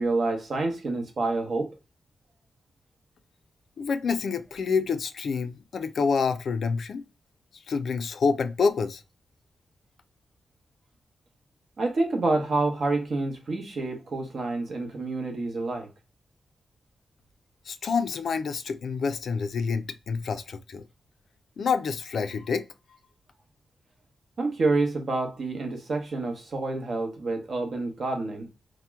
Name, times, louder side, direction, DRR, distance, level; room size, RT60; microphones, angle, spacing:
voice 1, 0.0-1.8 11.8-15.9 24.4-28.5, right 3 dB, 50° right, 0.8 m, -28 dB
voice 2, 3.8-7.0 7.7-9.0 17.7-20.8 21.6-22.7, left 5 dB, 65° left, 0.3 m, -27 dB
2.8 x 2.1 x 3.3 m
wide cardioid pair, 135°, 0 cm